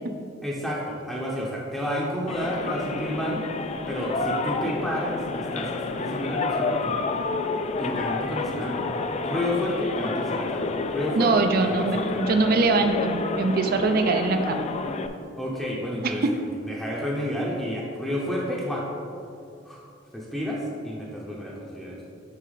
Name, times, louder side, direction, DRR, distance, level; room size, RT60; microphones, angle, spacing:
voice 1, 0.4-3.4 3.9-7.0 7.8-8.9 9.2-12.3 15.3-18.9 19.6-19.8 20.1-22.0, equal, ahead, -5 dB, 0.7 m, -30 dB
sound 1, 2.3-15.1, left 3 dB, 35° left, 0.3 m, -30 dB
voice 2, 11.1-14.7, right 3 dB, 50° right, 6 dB, 0.4 m, -22 dB
6.1 x 5.6 x 4.0 m, 2.6 s
head